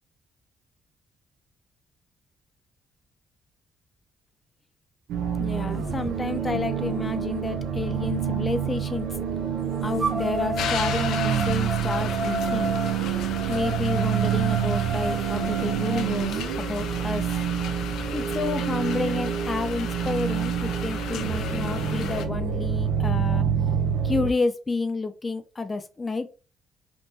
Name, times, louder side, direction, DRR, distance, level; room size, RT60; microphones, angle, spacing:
sound 1, 5.1-24.3, right 8 dB, 90° right, 0.4 m, -27 dB
voice 1, 5.4-9.1 9.8-12.7 13.5-17.3 18.1-23.5 24.0-26.3, left 3 dB, 25° left, 0.5 m, -30 dB
sound 2, 6.2-6.3 6.8-8.7 10.0-16.0, equal, 30° right, 0.5 m, -32 dB
sound 3, 10.6-22.2, left 7 dB, 80° left, 0.4 m, -36 dB
3.6 x 2.4 x 2.7 m
cardioid pair, 90°, 0 cm